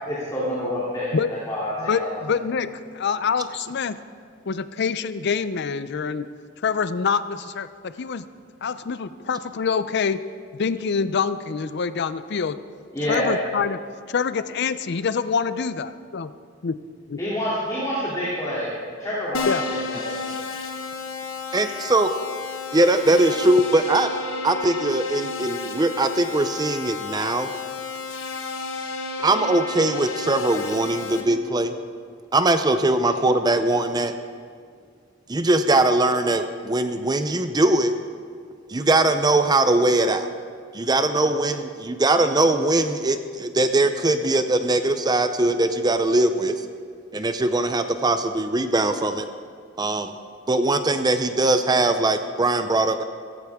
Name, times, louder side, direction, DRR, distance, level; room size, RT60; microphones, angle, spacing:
voice 1, 0.1-1.1 1.5-2.4 12.9-13.3 17.2-18.7 19.0-19.5 19.9-20.1, equal, 20° left, -9 dB, 2.9 m, -27 dB
voice 2, 1.8-4.0 4.5-6.3 6.6-8.3 8.6-10.2 10.5-12.6 13.1-13.8 14.1-16.3 16.6-16.7 19.5-19.6, left 6 dB, 60° left, 14 dB, 0.5 m, -25 dB
Keyboard (musical), 19.3-31.2, left 4 dB, 80° left, 1.3 m, -32 dB
voice 3, 21.5-22.1 22.7-24.1 24.4-27.5 29.2-31.8 32.3-34.1 35.3-37.9 38.7-40.3 40.7-46.7 47.1-49.3 49.8-50.1 50.5-53.0, right 2 dB, 20° right, 9 dB, 0.5 m, -21 dB
15.5 x 14.5 x 3.6 m, 2.1 s
head